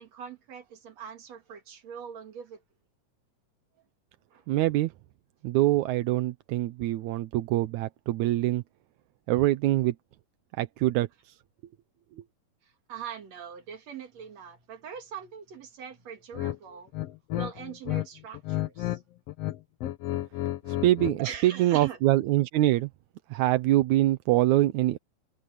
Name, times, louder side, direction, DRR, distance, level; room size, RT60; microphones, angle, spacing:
voice 1, 0.0-2.6 4.3-4.4 12.9-16.9 17.4-19.0 21.2-22.0, right 8 dB, 55° right, 3.0 m, -42 dB
voice 2, 4.5-4.9 5.4-8.6 9.3-10.0 10.6-11.3 20.7-22.9 23.3-25.0, right 15 dB, 75° right, 1.9 m, -24 dB
sound 1, 16.3-16.6 16.9-18.1 18.3-19.0 19.3-21.2, left 15 dB, 75° left, 1.5 m, -31 dB
omnidirectional pair, 3.9 m